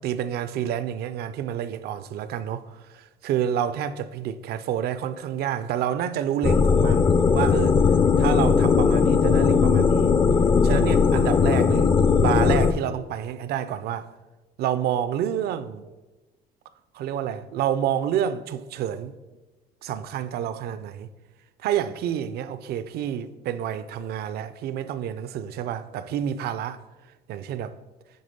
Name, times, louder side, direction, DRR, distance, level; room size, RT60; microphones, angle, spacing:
voice 1, 0.0-7.8 8.2-10.2 10.6-14.1 14.6-15.9 16.9-19.1 19.8-21.1 21.6-26.8 27.3-27.7, right 10 dB, 70° right, 0.5 m, -29 dB
sound 1, 6.4-12.7, left 5 dB, 30° left, 0.5 m, -19 dB
9.5 x 3.8 x 5.1 m
cardioid pair, 110°, 17 cm